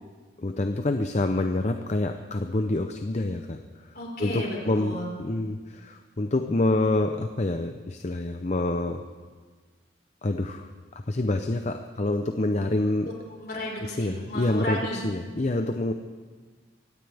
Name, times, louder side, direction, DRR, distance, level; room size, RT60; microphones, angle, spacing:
voice 1, 0.4-3.6 4.2-9.0 10.2-10.7 11.1-13.1 14.0-15.9, left 2 dB, 40° left, 6 dB, 0.7 m, -27 dB
voice 2, 3.9-5.1 13.0-15.0, left 1 dB, 60° left, -2 dB, 4.7 m, -34 dB
24.0 x 17.0 x 3.5 m, 1.5 s
head